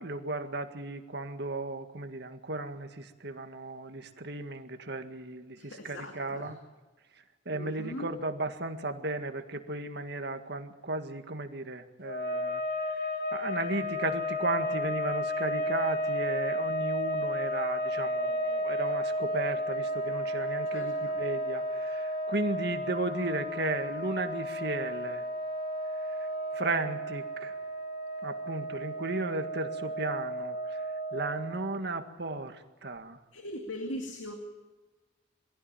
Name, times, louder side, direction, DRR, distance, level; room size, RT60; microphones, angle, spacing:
voice 1, 0.0-6.6 7.5-12.6 12.9-25.2 26.1-26.2 26.5-27.5 28.2-30.8 31.1-33.2, right 2 dB, 55° right, 7 dB, 1.8 m, -35 dB
voice 2, 5.6-6.5 7.5-8.1 20.7-21.2 33.3-34.3, left 1 dB, 75° left, 3 dB, 2.4 m, -40 dB
sound 1, 12.0-31.7, equal, 50° left, 1.9 m, -33 dB
22.5 x 16.0 x 9.0 m, 1.2 s
head